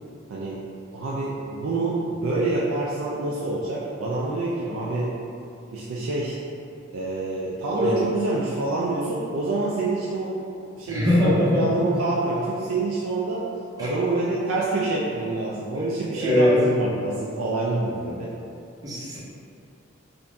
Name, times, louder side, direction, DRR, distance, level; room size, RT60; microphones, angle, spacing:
voice 1, 0.3-0.6 0.9-5.1 5.7-6.4 6.9-10.4 10.7-13.4 13.8-18.3, right 2 dB, 85° right, -6 dB, 0.4 m, -27 dB
voice 2, 10.9-11.7 13.8-13.9 15.7-16.6 18.8-19.2, left 1 dB, 20° right, -7 dB, 0.6 m, -22 dB
3.8 x 2.6 x 2.2 m, 2.6 s
head